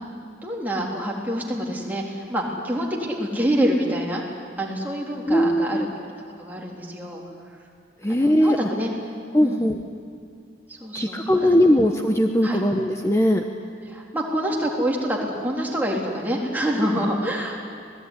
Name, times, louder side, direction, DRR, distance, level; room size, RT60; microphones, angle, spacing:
voice 1, 0.4-5.9 6.4-7.2 8.1-8.9 9.4-9.7 10.7-11.5 12.4-12.6 13.9-17.6, equal, 10° right, -2 dB, 3.6 m, -26 dB
voice 2, 5.2-5.9 8.0-8.7 9.3-9.8 10.9-13.4, equal, 15° left, 4 dB, 1.0 m, -20 dB
26.5 x 19.0 x 9.9 m, 2.3 s
head